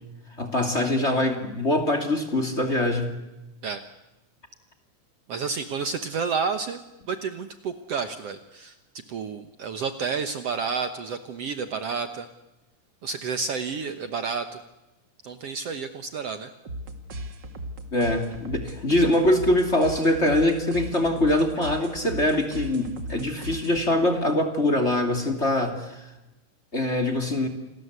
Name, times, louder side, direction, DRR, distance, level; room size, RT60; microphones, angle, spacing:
voice 1, 0.4-3.1 17.9-26.0 26.7-27.5, left 1 dB, 20° left, 8 dB, 2.7 m, -23 dB
voice 2, 5.3-6.8 7.1-8.8 9.1-12.3 13.0-14.6 15.2-16.5, right 5 dB, 60° right, 9 dB, 1.9 m, -30 dB
sound 1, 16.6-24.1, right 1 dB, 40° right, 2.5 m, -37 dB
29.0 x 20.0 x 8.2 m, 0.99 s
omnidirectional pair, 3.6 m